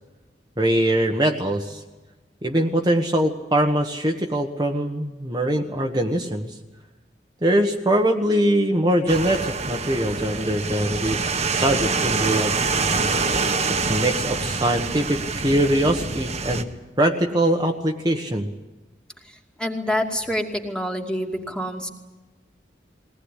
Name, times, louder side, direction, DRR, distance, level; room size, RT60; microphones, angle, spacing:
voice 1, 0.6-1.8 2.4-6.6 7.4-11.2 11.5-12.6 13.7-16.7 17.0-18.5, right 1 dB, 25° right, 2 dB, 1.4 m, -22 dB
sound 1, 9.1-16.6, right 4 dB, 40° right, 1.5 m, -25 dB
voice 2, 19.6-21.9, equal, 5° left, 2 dB, 2.5 m, -26 dB
22.0 x 19.0 x 10.0 m, 1.1 s
head